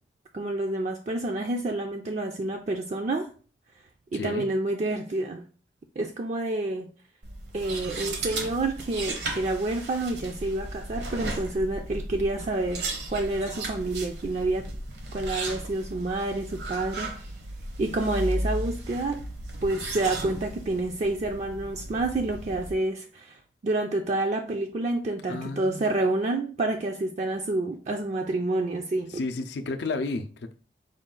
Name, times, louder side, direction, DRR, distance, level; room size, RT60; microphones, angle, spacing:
voice 1, 0.3-3.3 4.1-5.5 6.0-6.9 7.5-14.6 15.1-17.3 17.8-19.2 19.6-29.2, right 2 dB, 40° right, 4 dB, 0.3 m, -28 dB
voice 2, 4.1-4.5 25.3-25.9 29.1-30.5, left 3 dB, 80° left, 7 dB, 0.5 m, -32 dB
sound 1, 7.2-22.7, right 2 dB, 75° right, 0.9 m, -35 dB
5.0 x 2.3 x 3.7 m, 0.39 s
head